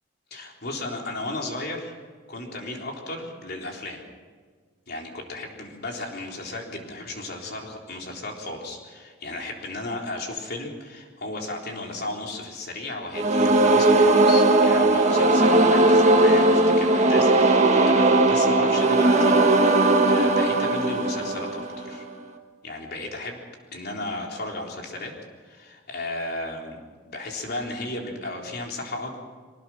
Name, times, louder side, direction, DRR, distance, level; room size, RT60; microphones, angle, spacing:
voice 1, 0.3-1.9 2.3-4.0 4.9-19.4 19.7-22.1 22.6-23.4 23.7-25.1 25.4-29.2, left 2 dB, 50° left, 0 dB, 3.8 m, -34 dB
sound 1, 13.1-22.0, right 2 dB, 35° right, 1.6 m, -18 dB
23.5 x 19.0 x 6.2 m, 1.5 s
head